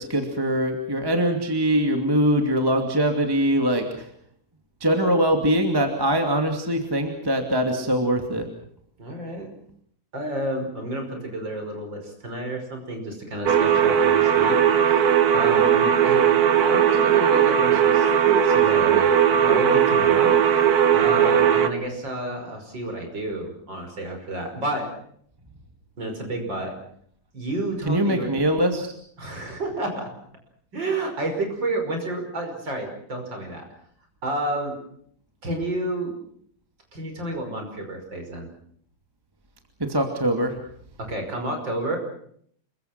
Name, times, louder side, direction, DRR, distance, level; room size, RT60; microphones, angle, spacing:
voice 1, 0.0-4.1 4.8-8.5 27.9-28.9 39.8-40.6, right 1 dB, 10° right, 4 dB, 2.1 m, -22 dB
voice 2, 9.0-9.5 10.1-16.2 16.6-18.1 18.4-24.9 26.0-26.7 27.3-28.3 29.2-30.1 30.7-33.7 34.2-34.8 35.4-36.1 36.9-38.5 41.0-42.0, right 1 dB, 35° right, 4 dB, 6.1 m, -30 dB
sound 1, 13.4-21.7, right 9 dB, 65° right, 0.9 m, -18 dB
28.0 x 23.0 x 6.0 m, 0.62 s
omnidirectional pair, 3.5 m